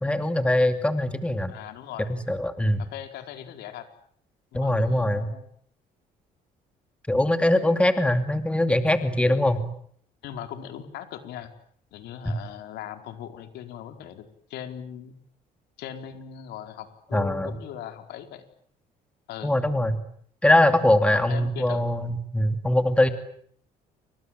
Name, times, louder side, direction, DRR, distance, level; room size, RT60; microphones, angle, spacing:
voice 1, 0.0-1.5 2.1-2.8 4.5-5.3 7.1-9.6 12.3-12.4 17.1-17.5 19.4-20.0 20.4-23.1, left 1 dB, 5° left, 8 dB, 2.6 m, -22 dB
voice 2, 1.5-2.1 2.8-3.9 4.5-5.4 10.2-11.5 11.9-15.1 15.8-18.5 19.3-19.6 21.1-21.8, left 10 dB, 80° left, 7 dB, 4.5 m, -39 dB
29.5 x 26.0 x 7.7 m, 0.64 s
cardioid pair, 110°, 17 cm